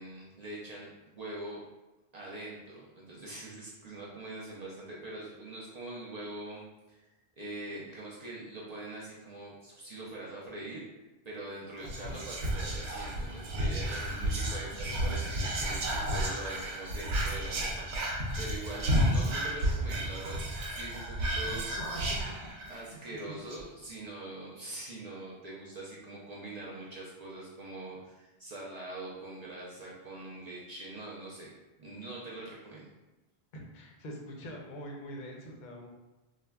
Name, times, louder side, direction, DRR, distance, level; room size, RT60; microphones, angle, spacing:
voice 1, 0.0-1.6 2.1-7.1 7.4-10.8 11.3-17.9 18.4-21.6 22.7-31.5 31.8-32.9, right 2 dB, 55° right, -5 dB, 0.5 m, -43 dB
Whispering, 11.8-22.9 23.2-23.3 23.5-23.9, equal, 85° right, 0.9 m, -32 dB
voice 2, 22.6-23.0 33.5-35.9, equal, 55° left, 0 dB, 0.6 m, -44 dB
3.3 x 2.1 x 2.2 m, 1.0 s
omnidirectional pair, 1.1 m